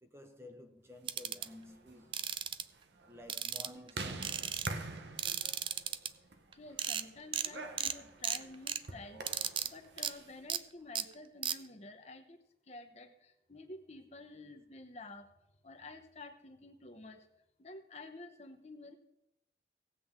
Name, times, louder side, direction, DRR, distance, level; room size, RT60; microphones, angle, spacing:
voice 1, 0.0-2.2 3.0-5.8, left 1 dB, 15° right, 0.8 m, -54 dB
sound 1, 1.1-1.5 2.1-2.6 3.3-3.9 4.2-4.7 5.2-6.1 6.5-6.6 6.8-7.0 7.3-7.5 7.8-7.9 8.2-8.8 9.3-9.7 10.0-10.1 10.5-10.6 10.9-11.0 11.4-11.6, right 9 dB, 30° right, 0.3 m, -35 dB
sound 2, 1.3-10.4, right 3 dB, 85° right, 1.0 m, -46 dB
voice 2, 6.5-9.3 9.6-12.4 12.7-15.3 15.6-17.3 17.6-19.0, left 2 dB, 35° left, 0.9 m, -50 dB
17.5 x 7.7 x 3.7 m
head